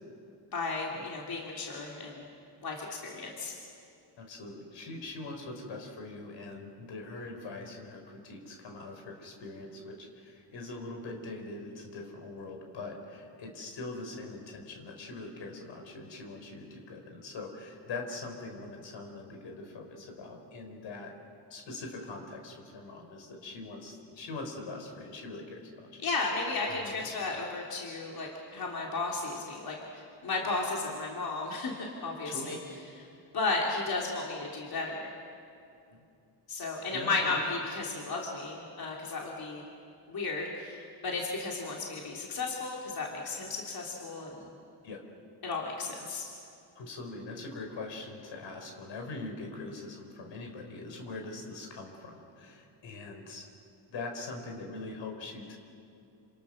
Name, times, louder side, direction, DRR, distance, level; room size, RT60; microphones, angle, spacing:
voice 1, 0.5-2.2 2.6-3.5 26.0-32.6 32.9-33.1 33.3-35.1 36.5-39.6 40.1-44.5 45.4-46.3, left 3 dB, 55° left, -2 dB, 3.6 m, -34 dB
voice 2, 4.2-21.1 21.5-26.0 26.7-27.0 32.2-32.5 35.9-36.0 36.9-37.4 44.8-45.0 46.0-46.1 46.7-53.5 53.9-55.6, left 3 dB, 75° left, 3 dB, 5.0 m, -42 dB
27.5 x 27.5 x 6.7 m, 2.6 s
cardioid pair, 100°, 44 cm